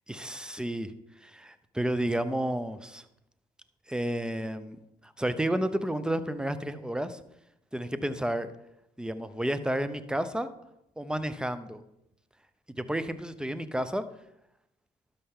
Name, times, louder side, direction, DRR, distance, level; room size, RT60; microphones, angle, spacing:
voice 1, 0.1-0.9 1.2-3.1 3.9-4.8 5.0-7.2 7.7-8.5 9.0-10.5 11.0-11.8 12.8-14.0, right 1 dB, 5° right, 12 dB, 0.7 m, -31 dB
12.0 x 5.7 x 3.7 m, 0.82 s
supercardioid pair, 65°, 17 cm